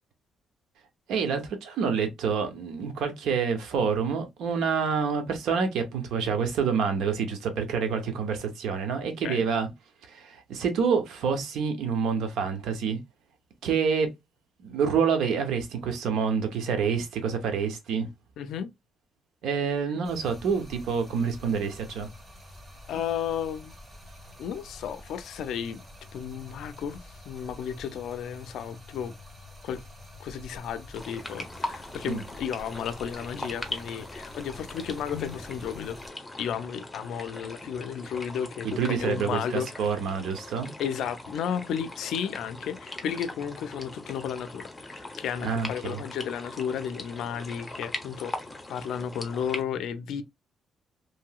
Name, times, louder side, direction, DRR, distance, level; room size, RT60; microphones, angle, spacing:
voice 1, 1.1-9.7 10.1-13.0 13.6-14.1 14.6-18.1 19.4-22.1 32.0-32.2 38.6-40.7 45.4-46.0, right 6 dB, 80° right, 0.8 m, -27 dB
voice 2, 18.4-18.7 22.9-23.7 24.4-25.8 26.1-29.1 29.6-29.8 30.2-36.0 36.4-39.9 40.8-48.3 48.7-50.2, left 8 dB, 80° left, 0.4 m, -33 dB
Stream, 20.0-36.1, left 1 dB, 25° right, 1.3 m, -48 dB
sound 1, 30.9-49.6, left 2 dB, 15° left, 0.8 m, -41 dB
3.0 x 2.8 x 2.3 m
cardioid pair, 90°, 0 cm